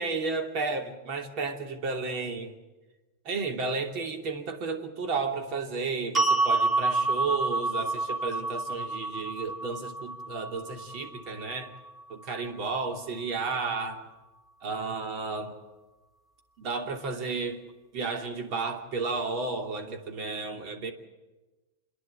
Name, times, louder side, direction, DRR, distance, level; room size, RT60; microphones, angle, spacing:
voice 1, 0.0-2.5 3.2-11.7 12.1-14.0 14.6-15.6 16.6-17.6 17.9-20.9, right 4 dB, 50° right, 4 dB, 2.9 m, -32 dB
sound 1, 6.1-12.4, right 3 dB, 15° right, 2.0 m, -29 dB
28.0 x 10.5 x 9.9 m, 1.2 s
hypercardioid pair, 105°, 0 cm